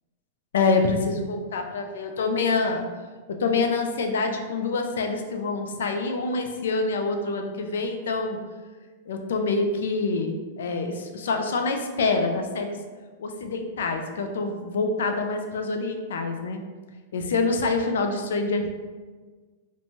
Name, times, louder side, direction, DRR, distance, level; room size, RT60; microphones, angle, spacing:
voice 1, 0.5-2.9 3.3-8.4 9.1-12.8 13.2-16.6 17.1-18.7, left 3 dB, 90° left, 5 dB, 0.4 m, -26 dB
2.9 x 2.2 x 2.7 m, 1.4 s
supercardioid pair, 170°, 0 cm